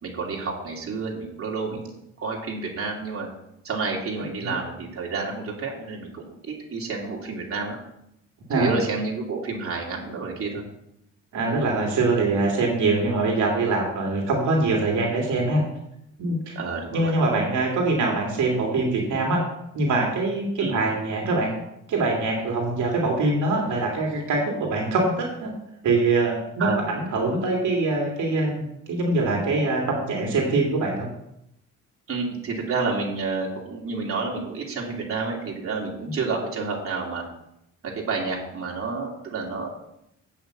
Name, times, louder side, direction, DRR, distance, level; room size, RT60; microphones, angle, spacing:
voice 1, 0.0-1.9 2.2-3.3 3.6-7.8 8.5-10.6 16.5-17.1 20.6-20.8 26.6-26.8 32.1-37.2 37.8-39.7, right 4 dB, 45° right, -2 dB, 2.8 m, -29 dB
voice 2, 11.3-15.6 16.2-16.6 16.9-19.4 19.7-21.5 21.9-25.5 25.8-28.5 28.9-31.1, right 3 dB, 75° right, -1 dB, 2.4 m, -23 dB
8.2 x 5.8 x 7.6 m, 0.80 s
cardioid pair, 90°, 30 cm